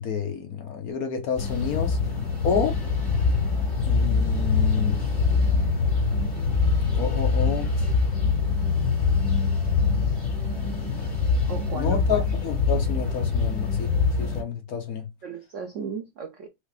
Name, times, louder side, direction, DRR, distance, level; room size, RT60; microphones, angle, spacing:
voice 1, 0.0-2.0 2.4-2.8 3.8-5.0 6.9-7.7 11.7-13.9 14.2-15.0, left 7 dB, 60° left, 1.1 m, -28 dB
sound 1, 1.4-14.4, left 4 dB, 20° left, 1.8 m, -24 dB
voice 2, 11.5-12.2 15.2-16.5, right 5 dB, 70° right, 0.7 m, -35 dB
4.9 x 2.7 x 3.2 m
omnidirectional pair, 2.1 m